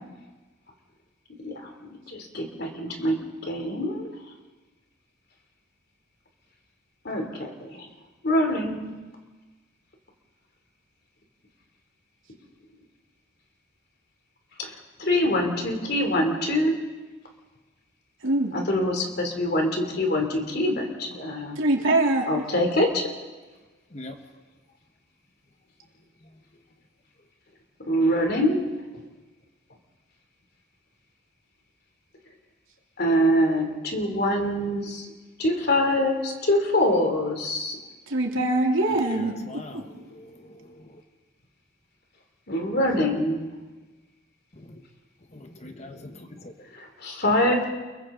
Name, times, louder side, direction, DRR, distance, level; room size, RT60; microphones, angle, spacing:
voice 1, 1.4-3.2 3.5-4.1 7.0-7.9 8.2-9.0 14.6-14.7 15.0-16.8 18.5-21.6 22.3-23.1 27.9-28.7 33.0-35.1 35.4-37.8 42.5-43.5 46.7-47.7, left 1 dB, 50° left, 3 dB, 3.0 m, -24 dB
voice 2, 18.2-18.5 21.6-22.3 38.1-39.3 39.7-39.8, right 2 dB, 75° right, -1 dB, 3.0 m, -23 dB
voice 3, 38.9-41.0 44.6-44.8 45.3-46.5, left 1 dB, 35° left, 5 dB, 1.2 m, -43 dB
30.0 x 22.5 x 3.8 m, 1.2 s
head